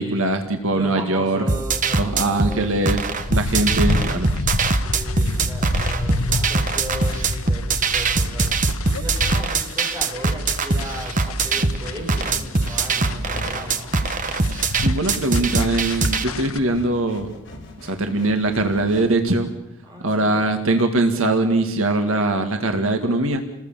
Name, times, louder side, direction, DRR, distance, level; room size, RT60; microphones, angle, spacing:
voice 1, 0.0-1.4 2.0-4.3 14.8-17.3 17.8-19.5 20.0-23.4, right 2 dB, 70° right, 6 dB, 2.0 m, -21 dB
voice 2, 0.6-2.8 4.7-8.5 8.9-14.0 19.8-20.5, equal, 20° right, -1 dB, 7.0 m, -35 dB
sound 1, 1.5-16.2, right 3 dB, 35° right, 1.3 m, -22 dB
sound 2, 3.2-16.6, left 2 dB, 80° left, 1.3 m, -29 dB
sound 3, 10.4-19.3, left 1 dB, 60° left, 5.3 m, -40 dB
29.5 x 20.5 x 7.4 m, 0.91 s
head